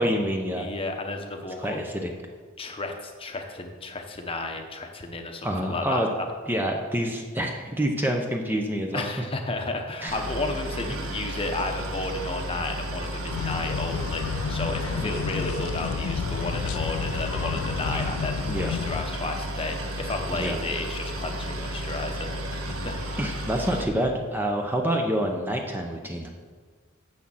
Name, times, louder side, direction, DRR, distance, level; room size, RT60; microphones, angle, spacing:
voice 1, 0.0-0.7 1.6-2.1 5.4-6.1 6.5-9.0 10.0-10.2 10.9-11.0 15.0-15.2 17.9-18.1 18.5-18.8 20.3-20.6 22.7-22.9 23.2-26.3, equal, 10° right, 2 dB, 0.6 m, -27 dB
voice 2, 0.6-1.8 2.6-6.3 8.9-23.4, left 2 dB, 25° left, 4 dB, 0.9 m, -33 dB
Boat Water vehicle, 10.1-23.8, right 1 dB, 90° right, 1.3 m, -33 dB
sound 1, 13.3-19.1, left 7 dB, 80° left, 0.3 m, -31 dB
7.4 x 6.3 x 7.1 m, 1.5 s
head